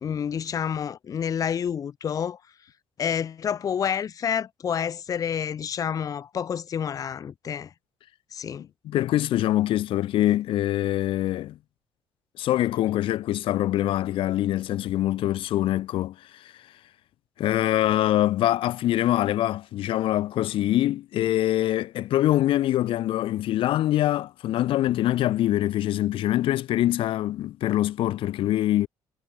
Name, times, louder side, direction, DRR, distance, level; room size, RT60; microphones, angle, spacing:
voice 1, 0.0-2.4 3.0-7.7 8.3-8.7, left 8 dB, 40° left, 1.3 m, -29 dB
voice 2, 8.8-11.6 12.4-16.5 17.4-28.9, left 14 dB, 70° left, 1.6 m, -24 dB
cardioid pair, 135°, 9 cm